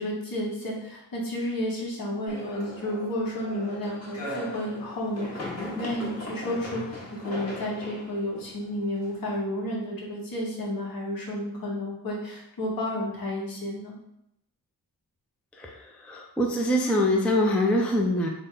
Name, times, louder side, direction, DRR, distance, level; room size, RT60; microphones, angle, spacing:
voice 1, 0.0-6.8 7.1-13.9, left 1 dB, 60° left, -3 dB, 1.2 m, -31 dB
sound 1, 2.3-9.4, left 1 dB, 40° left, 1.2 m, -39 dB
voice 2, 15.6-18.3, left 1 dB, 5° left, 1 dB, 0.4 m, -24 dB
3.9 x 2.2 x 3.7 m, 0.79 s
cardioid pair, 90°, 40 cm